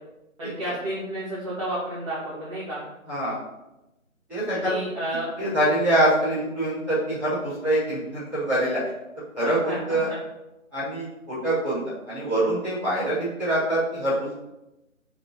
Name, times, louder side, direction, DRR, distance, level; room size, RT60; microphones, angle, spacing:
voice 1, 0.4-2.8 4.5-5.3 9.4-10.2, right 1 dB, 25° right, -11 dB, 2.1 m, -31 dB
voice 2, 3.1-3.4 4.3-4.8 5.4-8.8 9.3-10.1 10.7-11.8 12.1-14.3, right 1 dB, 5° right, -17 dB, 2.7 m, -24 dB
5.9 x 4.9 x 5.9 m, 0.95 s
figure-of-eight pair, 165°, 41 cm